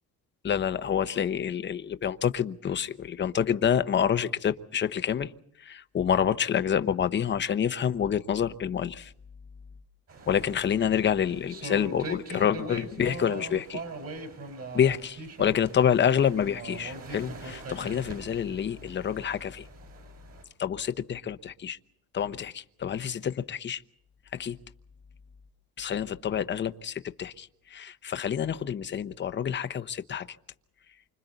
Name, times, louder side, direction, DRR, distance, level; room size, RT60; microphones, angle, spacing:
voice 1, 0.4-5.3 5.6-9.1 10.3-13.8 14.8-15.1 15.4-19.7 20.6-21.8 22.1-23.8 24.3-24.6 25.8-30.4, left 8 dB, 30° left, 0.9 m, -27 dB
sound 1, 10.1-20.4, right 2 dB, 40° right, 4.9 m, -41 dB
29.0 x 25.5 x 4.0 m
cardioid pair, 155°, 38 cm